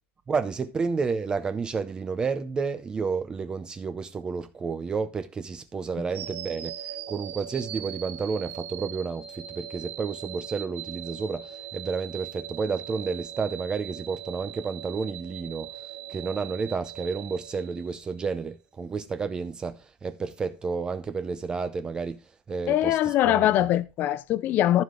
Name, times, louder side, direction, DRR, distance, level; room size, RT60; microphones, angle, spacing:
voice 1, 0.3-15.8 16.1-23.0 23.3-23.5, right 5 dB, 15° right, 0.6 m, -31 dB
sound 1, 6.1-18.2, right 10 dB, 40° right, 2.9 m, -40 dB
voice 2, 22.7-24.8, left 13 dB, 35° left, 0.4 m, -22 dB
14.5 x 5.0 x 3.7 m
cardioid pair, 170°, 5 cm